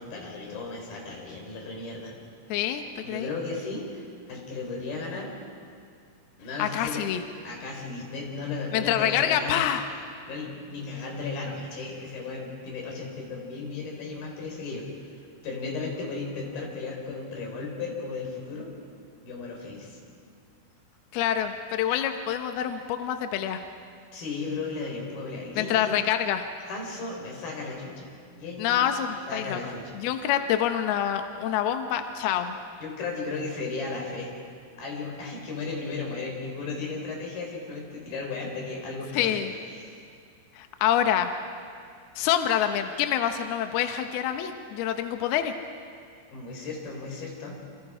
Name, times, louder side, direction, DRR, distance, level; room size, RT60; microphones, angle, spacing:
voice 1, 0.0-2.1 3.0-5.3 6.4-7.0 7.4-9.7 10.3-14.9 15.4-18.7 19.2-20.0 24.1-25.9 26.7-28.9 29.3-29.8 32.8-34.3 34.8-39.4 39.8-40.0 46.3-47.6, left 3 dB, 50° left, 0 dB, 5.9 m, -35 dB
voice 2, 2.5-3.3 6.6-7.2 8.7-9.8 21.1-23.6 25.6-26.5 28.6-29.6 30.0-32.6 39.1-39.5 40.6-41.3 42.2-45.5, left 10 dB, 80° left, 6 dB, 2.2 m, -26 dB
29.0 x 26.5 x 5.0 m, 2.3 s
omnidirectional pair, 5.8 m